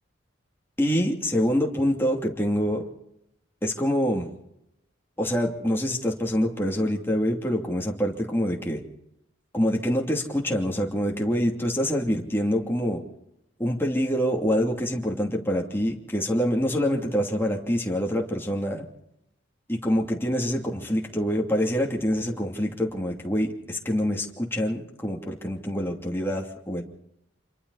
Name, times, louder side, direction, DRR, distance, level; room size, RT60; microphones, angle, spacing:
voice 1, 0.8-2.8 3.6-4.3 5.2-8.8 9.5-13.0 13.6-18.8 19.7-26.8, equal, 10° left, 0 dB, 2.8 m, -25 dB
27.0 x 22.5 x 4.2 m, 0.79 s
head